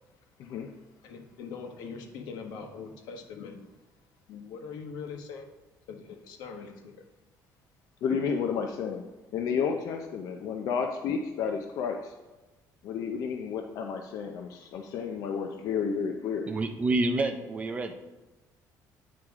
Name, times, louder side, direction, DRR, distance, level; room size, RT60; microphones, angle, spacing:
voice 1, 0.4-0.7 8.0-9.0 9.3-12.1 12.8-16.5, left 6 dB, 60° left, 4 dB, 0.5 m, -31 dB
voice 2, 1.0-3.6 4.3-5.5 5.9-7.0, left 5 dB, 75° left, 4 dB, 1.1 m, -42 dB
voice 3, 16.5-18.0, right 2 dB, 20° right, 7 dB, 0.4 m, -28 dB
9.2 x 4.8 x 3.6 m, 1.2 s
cardioid pair, 175°, 7 cm